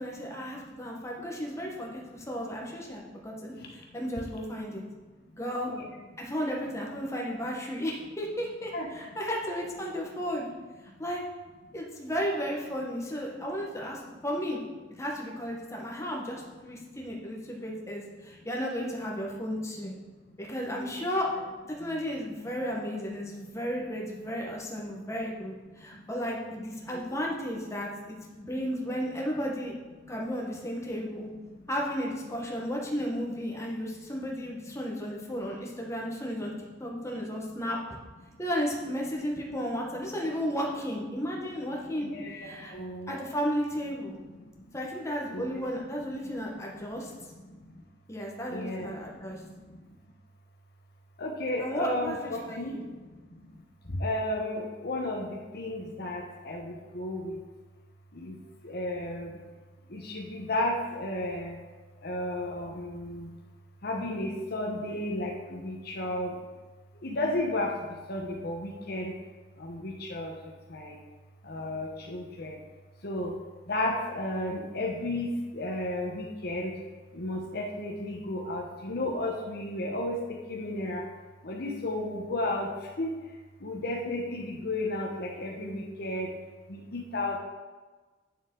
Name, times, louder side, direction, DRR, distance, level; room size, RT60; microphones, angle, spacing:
voice 1, 0.0-4.8 5.3-5.7 6.2-10.5 11.0-11.2 11.7-14.6 15.0-19.9 20.4-21.3 21.7-29.7 30.1-31.3 31.7-36.5 36.8-37.8 38.4-42.7 43.1-44.2 44.7-47.1 48.1-49.4 51.6-52.8, equal, 15° left, -2 dB, 1.3 m, -34 dB
voice 2, 42.1-43.1 45.3-45.4 48.5-48.9 51.2-52.7 54.0-57.4 58.2-58.3 58.6-59.3 59.9-61.6 62.0-63.3 63.8-66.3 67.0-67.7 68.1-69.1 69.6-70.3 70.7-71.0 71.5-72.5 73.0-73.3 73.7-75.3 75.5-76.7 77.2-80.2 80.5-81.0 81.4-82.7 83.0-83.2 83.6-86.3 86.7-87.4, left 1 dB, 55° left, 1 dB, 1.0 m, -33 dB
8.6 x 7.0 x 3.8 m, 1.3 s
head